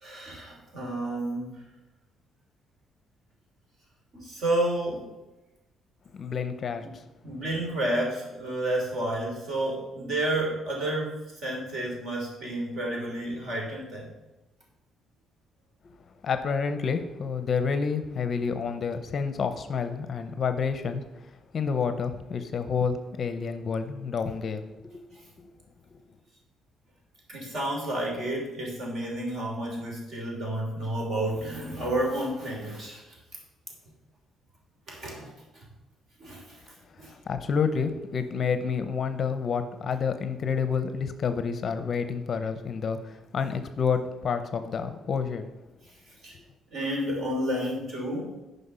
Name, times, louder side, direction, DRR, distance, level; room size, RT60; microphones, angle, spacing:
voice 1, 0.0-1.5 4.1-5.1 6.8-6.9 7.2-14.1 27.3-33.0 34.9-35.3 36.2-36.4 37.0-37.1 46.2-46.3 46.7-48.3, right 1 dB, 50° right, -1 dB, 3.2 m, -30 dB
voice 2, 6.1-7.0 16.2-21.0 21.5-24.6 24.9-25.0 25.9-26.0 37.0-45.5, left 6 dB, 40° left, 9 dB, 0.6 m, -29 dB
9.9 x 5.4 x 5.5 m, 1.0 s
cardioid pair, 155°, 0 cm